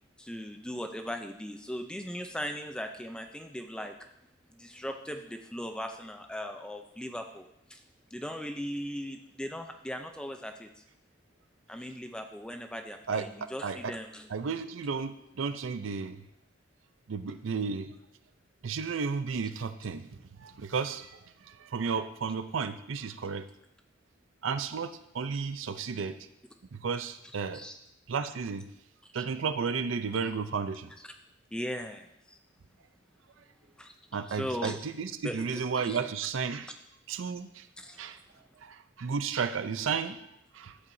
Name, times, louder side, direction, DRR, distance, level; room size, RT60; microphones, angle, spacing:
voice 1, 0.2-3.9 4.5-7.8 8.1-10.8 11.7-14.3 27.5-27.8 29.2-29.3 31.0-31.1 31.5-32.4 33.8-33.9 34.3-34.8 35.2-36.0 37.8-38.1, equal, 5° left, 5 dB, 0.4 m, -38 dB
voice 2, 13.6-13.9 14.3-16.2 17.1-17.9 18.6-23.5 24.4-26.2 26.7-27.6 28.1-28.7 29.1-30.9 34.1-36.7 37.1-37.7 38.0-38.2 38.6-40.2 40.5-40.8, right 5 dB, 85° right, 11 dB, 0.5 m, -33 dB
12.0 x 8.3 x 2.7 m, 0.79 s
head